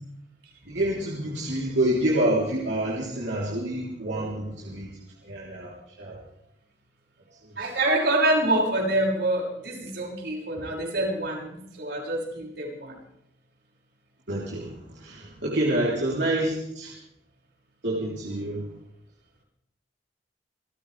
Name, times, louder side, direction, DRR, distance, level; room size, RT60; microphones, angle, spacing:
voice 1, 0.7-4.9 5.2-5.7 6.0-6.2 14.3-16.9 17.8-18.6, right 1 dB, 85° right, -4 dB, 3.6 m, -27 dB
voice 2, 7.6-12.9 15.8-15.9, right 1 dB, 65° right, -2 dB, 6.1 m, -26 dB
28.5 x 14.5 x 3.4 m, 0.78 s
head